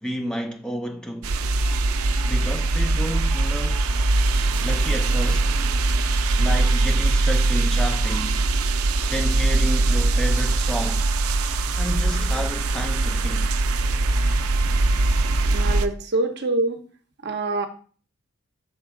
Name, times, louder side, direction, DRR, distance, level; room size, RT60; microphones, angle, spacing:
voice 1, 0.0-1.4 2.3-3.9 4.6-5.6 6.4-8.4 9.1-11.1 11.8-13.5, equal, 5° left, 0.4 m, -31 dB
sound 1, 1.2-15.9, right 2 dB, 80° right, 0.5 m, -21 dB
voice 2, 15.5-16.8 17.2-17.7, right 2 dB, 50° right, 0.8 m, -25 dB
6.7 x 4.3 x 3.7 m
head